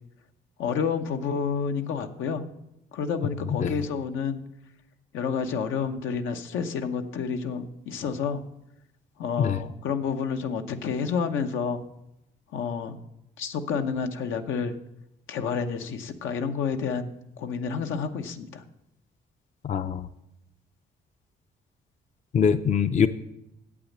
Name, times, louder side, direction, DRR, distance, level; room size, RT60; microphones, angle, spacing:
voice 1, 0.6-2.4 2.9-4.4 5.1-8.4 9.2-11.8 12.5-13.0 13.4-14.7 15.3-17.1 17.4-18.6, left 6 dB, 80° left, 6 dB, 1.0 m, -29 dB
voice 2, 19.6-20.1 22.3-23.1, left 7 dB, 35° left, 12 dB, 0.5 m, -23 dB
8.6 x 8.1 x 7.3 m, 0.84 s
cardioid pair, 90°, 20 cm